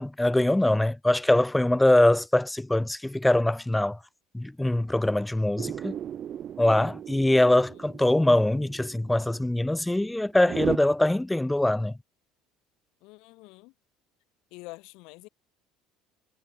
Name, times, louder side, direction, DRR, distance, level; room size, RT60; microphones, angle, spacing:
voice 1, 0.0-4.0 4.3-6.0 6.6-11.9, left 1 dB, 5° left, 0.4 m, -23 dB
sound 1, 5.6-10.8, right 10 dB, 40° right, 0.6 m, -36 dB
voice 2, 7.3-7.8 13.0-13.7 14.5-15.3, left 24 dB, 55° left, 2.7 m, -47 dB
figure-of-eight pair, 60°, 0 cm